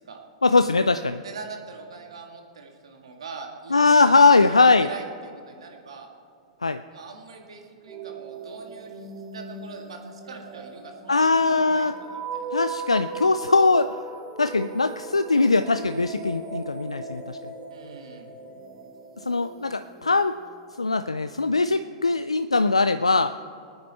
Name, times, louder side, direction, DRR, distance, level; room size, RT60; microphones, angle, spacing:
voice 1, 0.4-1.2 3.7-4.9 6.6-6.8 11.1-11.9 12.5-13.9 14.4-17.4 19.3-20.3 20.8-23.3, left 3 dB, 90° left, 11 dB, 0.3 m, -20 dB
voice 2, 1.2-4.0 4.5-6.1 6.9-12.6 17.7-18.3, right 4 dB, 70° right, 3 dB, 1.9 m, -42 dB
sound 1, 7.9-20.6, right 4 dB, 20° right, 2.8 m, -38 dB
20.5 x 9.6 x 4.3 m, 2.5 s
figure-of-eight pair, 100°, 3 cm